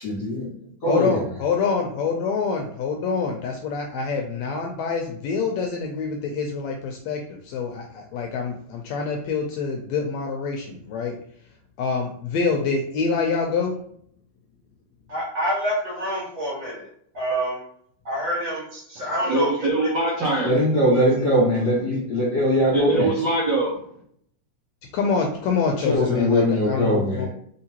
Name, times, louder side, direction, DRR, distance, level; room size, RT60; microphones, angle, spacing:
voice 1, 0.0-0.5 0.8-1.2 20.4-23.1 25.8-27.3, equal, 45° left, -6 dB, 1.6 m, -21 dB
voice 2, 0.9-11.2 11.8-13.8 24.9-27.3, left 5 dB, 80° left, 2 dB, 1.6 m, -26 dB
voice 3, 15.1-16.9 17.1-17.6 18.1-19.9, right 1 dB, 50° right, -5 dB, 1.9 m, -27 dB
voice 4, 19.2-20.5 22.7-23.7, right 2 dB, 80° right, -4 dB, 1.0 m, -22 dB
4.2 x 3.7 x 2.8 m, 0.65 s
omnidirectional pair, 3.5 m